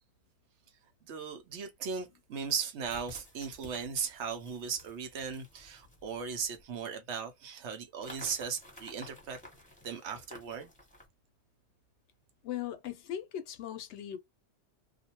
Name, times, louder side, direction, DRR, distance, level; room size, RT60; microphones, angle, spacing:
voice 1, 1.0-9.4 9.8-10.7, right 6 dB, 75° right, 1.0 m, -37 dB
sound 1, 1.5-1.6 2.8-6.7 8.0-11.1, left 1 dB, 5° left, 1.1 m, -53 dB
voice 2, 12.4-14.2, left 11 dB, 75° left, 0.8 m, -39 dB
2.6 x 2.1 x 2.8 m
omnidirectional pair, 1.2 m